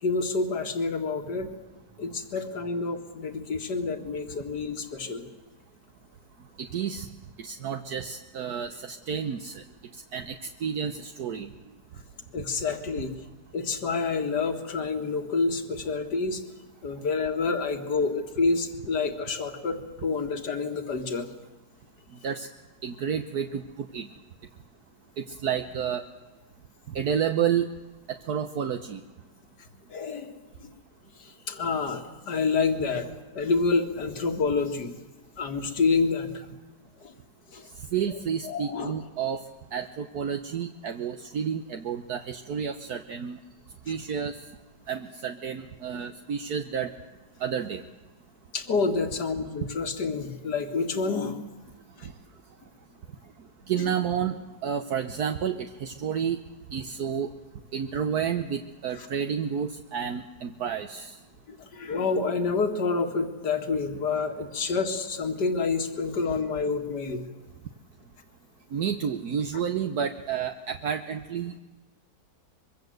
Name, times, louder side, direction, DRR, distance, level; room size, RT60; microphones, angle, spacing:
voice 1, 0.0-1.5 2.0-5.2 12.3-13.1 13.5-16.4 16.8-21.3 29.9-30.3 30.6-30.7 31.2-33.1 33.3-34.9 35.4-36.4 37.0-37.1 37.5-37.7 38.5-38.9 43.9-44.0 48.5-51.4 52.0-52.1 59.0-59.1 61.5-67.2, left 4 dB, 75° left, 6 dB, 2.6 m, -28 dB
voice 2, 6.6-7.1 7.4-9.6 10.1-10.4 10.6-11.5 22.2-22.5 22.8-24.1 25.2-26.0 26.9-27.7 28.1-29.0 37.9-39.4 39.7-43.4 43.9-44.4 44.9-46.9 47.4-47.8 53.7-54.4 54.6-56.4 56.7-57.3 57.7-61.1 68.7-71.5, right 8 dB, 65° right, 7 dB, 1.5 m, -30 dB
24.0 x 23.0 x 7.9 m, 1.2 s
omnidirectional pair, 1.8 m